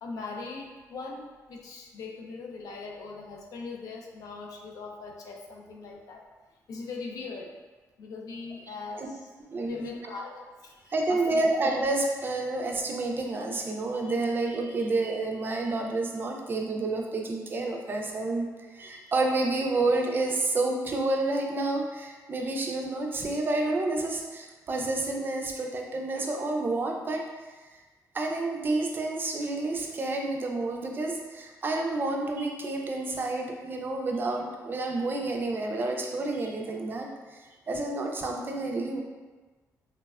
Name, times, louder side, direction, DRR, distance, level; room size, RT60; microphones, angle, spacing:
voice 1, 0.0-6.2 6.7-7.5 8.0-9.2 9.6-11.4, left 4 dB, 75° left, 0 dB, 0.4 m, -40 dB
voice 2, 9.5-9.9 10.9-18.5 18.7-27.2 28.1-39.0, right 2 dB, 35° right, 1 dB, 0.3 m, -29 dB
3.2 x 2.1 x 2.3 m, 1.3 s
cardioid pair, 135°, 6 cm